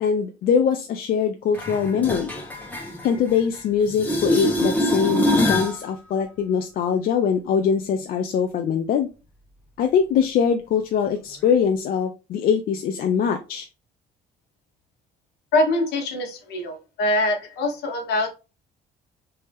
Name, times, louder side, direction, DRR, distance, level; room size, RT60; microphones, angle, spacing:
voice 1, 0.0-2.3 3.0-9.1 9.8-13.7, left 7 dB, 60° left, 5 dB, 0.5 m, -22 dB
sound 1, 1.5-3.6 3.9-5.8 11.5-11.6, left 1 dB, 10° left, 1.1 m, -24 dB
voice 2, 15.5-18.3, left 1 dB, 75° left, 3 dB, 1.2 m, -23 dB
3.3 x 2.8 x 3.3 m, 0.30 s
cardioid pair, 110°, 17 cm